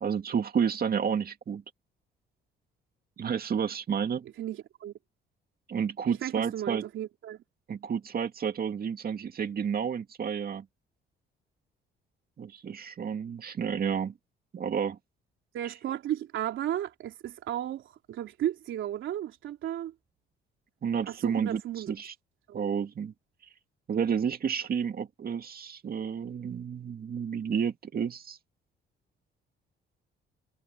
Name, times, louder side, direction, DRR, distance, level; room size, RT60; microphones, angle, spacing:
voice 1, 0.0-1.6 3.2-4.3 5.7-6.8 7.7-10.7 12.4-14.1 14.5-15.0 20.8-21.6 21.9-22.1 22.5-23.1 23.9-28.4, right 7 dB, 50° right, 2.2 m, -30 dB
voice 2, 4.4-4.9 6.1-7.4 15.5-19.9 21.1-21.9 22.5-22.7, right 11 dB, 80° right, 3.3 m, -34 dB
cardioid pair, 90°, 20 cm